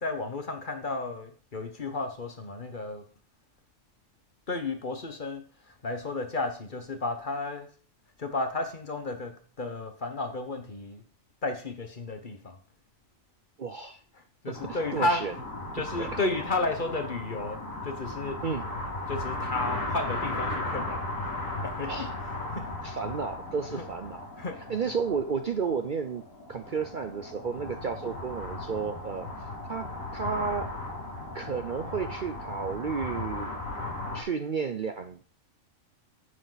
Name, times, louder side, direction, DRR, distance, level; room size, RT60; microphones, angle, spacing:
voice 1, 0.0-3.1 4.5-7.7 8.2-11.0 11.4-12.6 14.1-15.3 15.7-18.6 19.1-21.1 21.6-22.8 23.7-23.9 24.4-24.8 27.5-27.7, left 2 dB, 40° left, 6 dB, 1.3 m, -33 dB
voice 2, 13.6-14.0 14.5-15.3 16.0-16.1 18.4-18.6 21.9-22.1 22.8-24.2 24.7-26.2 26.5-29.3 29.7-29.9 30.1-30.7 31.3-33.5 34.1-35.2, right 5 dB, 50° right, 7 dB, 0.7 m, -32 dB
sound 1, 14.5-34.2, left 2 dB, 80° left, 3.0 m, -36 dB
9.8 x 7.5 x 4.0 m, 0.41 s
omnidirectional pair, 1.4 m